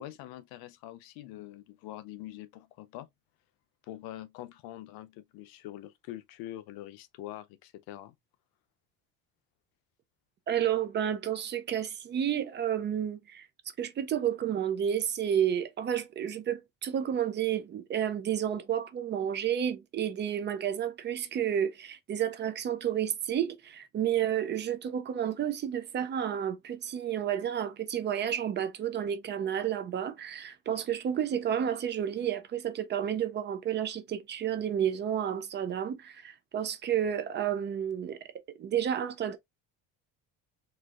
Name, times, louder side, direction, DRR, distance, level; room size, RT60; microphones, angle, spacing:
voice 1, 0.0-3.1 3.9-8.1, left 14 dB, 90° left, 0.6 m, -44 dB
voice 2, 10.5-13.5 13.8-38.2 38.6-39.4, right 9 dB, 30° right, 0.4 m, -31 dB
4.2 x 2.6 x 2.4 m
cardioid pair, 160°, 35 cm